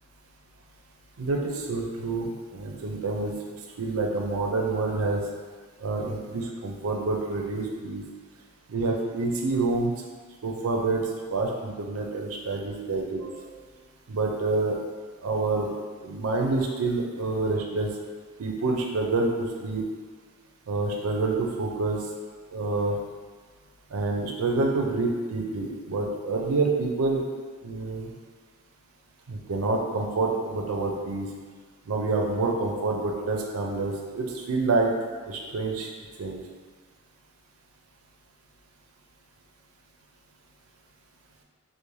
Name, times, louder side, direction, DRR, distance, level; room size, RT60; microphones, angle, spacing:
voice 1, 1.2-3.3 3.8-5.2 5.8-8.0 8.7-9.9 10.4-13.6 14.1-14.8 15.2-15.7 16.0-17.9 18.4-19.8 20.7-22.0 22.5-23.0 23.9-27.2 27.6-28.1 29.3-31.3 31.9-34.9 35.3-35.9 36.2-36.4, right 3 dB, 75° right, 1 dB, 0.4 m, -27 dB
2.5 x 2.1 x 3.0 m, 1.5 s
head